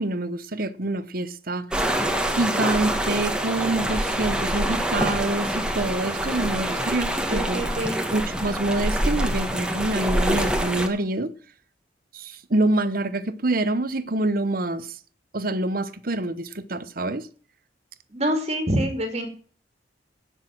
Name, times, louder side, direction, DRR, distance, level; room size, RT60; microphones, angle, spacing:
voice 1, 0.0-1.7 2.3-7.6 8.1-11.3 12.1-15.0 15.3-17.3, right 2 dB, 50° right, 1.0 m, -26 dB
sound 1, 1.7-10.9, right 1 dB, 5° right, 1.6 m, -25 dB
voice 2, 7.3-8.0 18.1-19.3, equal, 35° right, 2.3 m, -26 dB
17.5 x 6.5 x 6.3 m
head